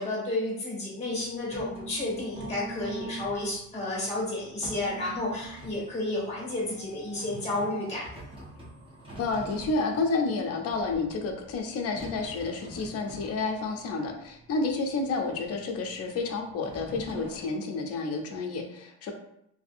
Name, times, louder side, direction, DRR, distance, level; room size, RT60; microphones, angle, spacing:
voice 1, 0.0-8.0, left 2 dB, 15° left, -5 dB, 1.3 m, -31 dB
sound 1, 1.1-17.5, right 2 dB, 15° right, 0.6 m, -45 dB
voice 2, 9.2-19.1, left 3 dB, 35° left, 3 dB, 0.5 m, -30 dB
2.6 x 2.6 x 2.5 m, 0.78 s
cardioid pair, 140°, 43 cm